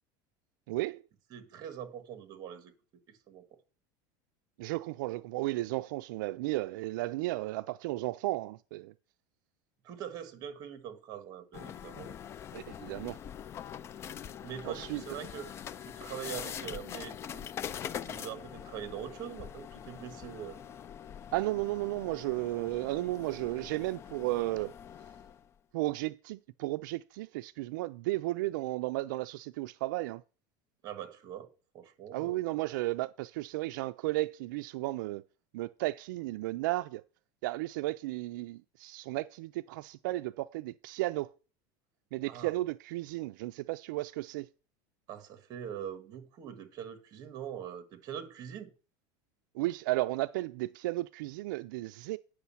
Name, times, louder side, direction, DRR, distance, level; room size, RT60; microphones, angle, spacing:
voice 1, 0.7-1.0 4.6-8.9 12.5-13.2 14.6-15.0 21.3-24.7 25.7-30.2 32.1-35.2 35.5-37.0 37.4-41.3 42.1-44.5 49.5-52.2, right 19 dB, 85° right, 0.4 m, -34 dB
voice 2, 1.3-2.7 3.1-3.4 9.8-12.1 14.4-15.5 15.8-17.5 18.0-20.6 30.8-31.5 31.7-32.4 42.3-42.5 45.1-48.7, right 9 dB, 40° right, 1.7 m, -43 dB
sound 1, 11.5-25.5, left 9 dB, 25° left, 0.4 m, -43 dB
9.5 x 6.3 x 5.7 m
supercardioid pair, 155°, 10 cm